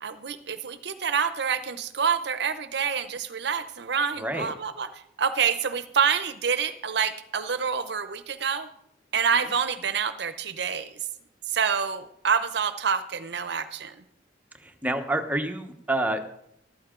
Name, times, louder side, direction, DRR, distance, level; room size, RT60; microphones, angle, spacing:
voice 1, 0.0-4.9 5.2-8.7 9.1-10.9 11.5-14.0, right 6 dB, 65° right, 12 dB, 0.7 m, -27 dB
voice 2, 4.1-4.5 9.3-9.5 14.6-16.2, right 1 dB, 10° right, 5 dB, 1.0 m, -28 dB
13.5 x 12.5 x 3.8 m, 0.75 s
head